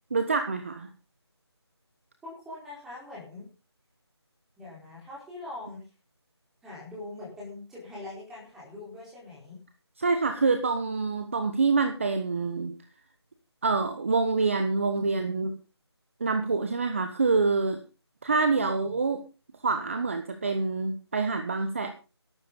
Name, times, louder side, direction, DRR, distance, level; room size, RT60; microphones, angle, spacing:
voice 1, 0.1-0.9 10.0-12.7 13.6-15.5 16.2-17.8 18.2-19.2 19.6-21.9, right 4 dB, 30° right, 7 dB, 1.3 m, -26 dB
voice 2, 2.2-3.5 4.6-5.8 6.6-9.6 18.5-19.0, left 2 dB, 5° right, -5 dB, 4.3 m, -42 dB
13.0 x 12.0 x 5.3 m, 0.33 s
figure-of-eight pair, 170°, 14 cm